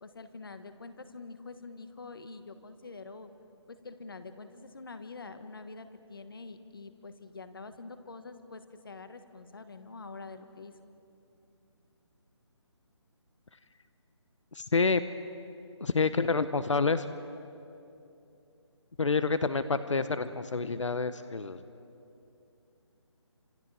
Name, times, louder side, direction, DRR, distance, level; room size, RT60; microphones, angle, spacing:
voice 1, 0.0-3.3 3.7-10.7, left 3 dB, 45° left, 10 dB, 1.4 m, -46 dB
voice 2, 14.5-15.0 15.8-17.0 19.0-21.6, left 4 dB, 80° left, 12 dB, 1.0 m, -28 dB
29.0 x 27.0 x 4.9 m, 2.7 s
hypercardioid pair, 180°, 16 cm